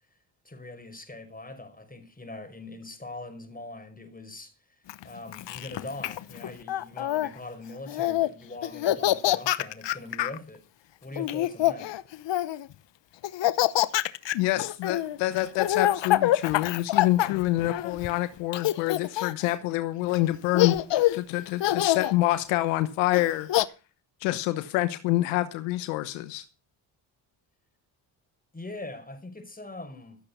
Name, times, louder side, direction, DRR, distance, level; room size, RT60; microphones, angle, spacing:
voice 1, 0.4-4.5 5.0-10.6 11.0-11.9 28.5-30.2, left 2 dB, 15° left, 5.4 m, -42 dB
Laughter, 4.9-7.3 7.9-8.3 8.6-10.4 11.2-12.7 13.2-18.1 18.5-19.5 20.1-20.2 20.5-21.2 21.6-22.1 23.1-23.7, left 14 dB, 60° left, 1.0 m, -26 dB
voice 2, 14.3-20.8 21.1-23.5 24.2-26.4, left 16 dB, 90° left, 1.1 m, -27 dB
15.5 x 8.6 x 6.9 m
supercardioid pair, 55°, 49 cm